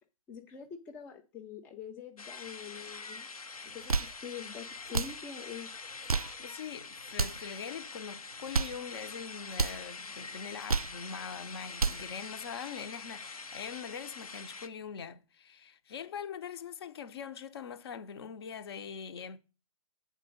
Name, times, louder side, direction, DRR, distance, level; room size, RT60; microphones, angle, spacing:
voice 1, 0.3-3.3 3.7-5.7, left 8 dB, 10° left, 0.4 m, -45 dB
sound 1, 2.2-14.7, left 4 dB, 80° left, 0.9 m, -45 dB
sound 2, 3.7-4.2 4.9-5.2 5.9-6.4 7.1-7.5 8.3-8.8 9.5-9.8 10.5-11.0 11.6-12.1, right 4 dB, 90° right, 0.4 m, -31 dB
voice 2, 6.4-19.4, left 7 dB, 45° left, 0.8 m, -43 dB
7.4 x 3.9 x 6.4 m
figure-of-eight pair, 135°, 18 cm